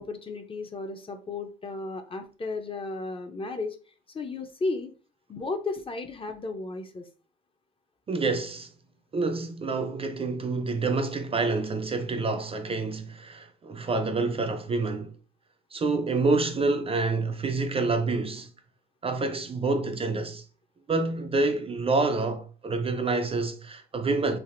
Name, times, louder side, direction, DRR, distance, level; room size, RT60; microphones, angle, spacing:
voice 1, 0.0-3.8 4.1-4.9 5.3-7.1, left 3 dB, 30° left, 0.5 m, -34 dB
voice 2, 8.1-8.7 9.1-15.2 15.7-18.5 19.0-20.5 20.9-24.4, right 3 dB, 30° right, 0.4 m, -27 dB
3.3 x 2.4 x 2.5 m
cardioid pair, 90°, 20 cm